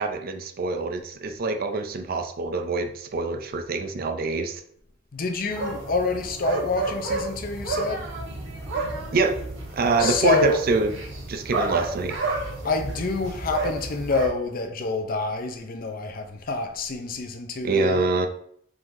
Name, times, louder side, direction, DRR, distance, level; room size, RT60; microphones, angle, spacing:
voice 1, 0.0-4.6 9.1-9.4 9.7-10.9 11.3-12.2 17.6-18.3, right 3 dB, 50° right, 0.4 m, -25 dB
voice 2, 5.1-8.1 10.0-10.6 12.6-18.1, left 3 dB, 50° left, 0.6 m, -27 dB
sound 1, 5.5-14.3, right 3 dB, 90° right, 1.1 m, -31 dB
4.7 x 3.7 x 2.6 m
head